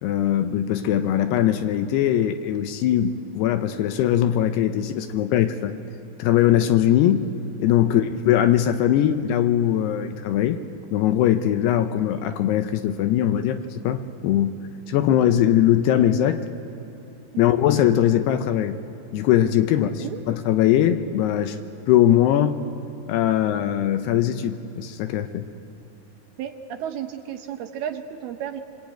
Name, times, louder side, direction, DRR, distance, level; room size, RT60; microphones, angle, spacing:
voice 1, 0.0-5.7 6.2-7.3 7.6-10.6 10.9-14.6 14.9-16.4 17.4-18.8 19.1-21.6 21.9-22.6 23.1-25.5, left 11 dB, 80° left, 9 dB, 2.6 m, -21 dB
voice 2, 19.7-20.2 26.4-28.6, right 9 dB, 75° right, 5 dB, 2.5 m, -33 dB
26.0 x 22.5 x 9.0 m, 2.7 s
omnidirectional pair, 5.1 m